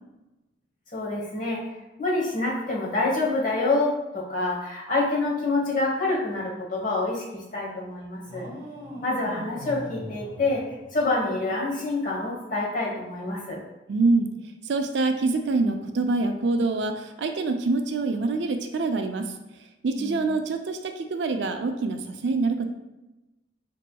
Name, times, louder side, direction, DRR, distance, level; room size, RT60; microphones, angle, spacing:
voice 1, 0.9-1.6 2.0-8.5 9.0-10.6 10.9-13.6 20.0-20.2, left 2 dB, 50° left, -3 dB, 1.1 m, -27 dB
sound 1, 8.3-11.4, equal, 20° right, 0.8 m, -40 dB
voice 2, 13.9-14.3 14.6-19.3 19.8-22.7, right 3 dB, 80° right, 6 dB, 0.4 m, -25 dB
5.2 x 2.9 x 2.2 m, 1.0 s
head